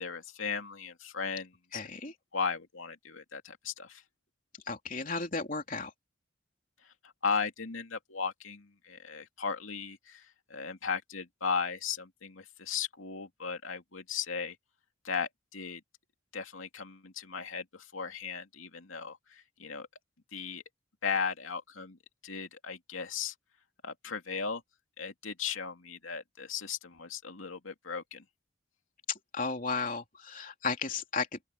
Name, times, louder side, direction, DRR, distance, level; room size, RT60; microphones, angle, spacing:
voice 1, 0.0-4.0 6.8-14.6 15.0-15.8 16.3-19.9 20.3-20.6 21.0-23.3 23.8-24.6 25.0-28.2, left 5 dB, 90° left, 2.7 m, -36 dB
voice 2, 1.7-2.1 4.7-5.9 29.3-31.5, left 4 dB, 40° left, 3.4 m, -34 dB
open air
head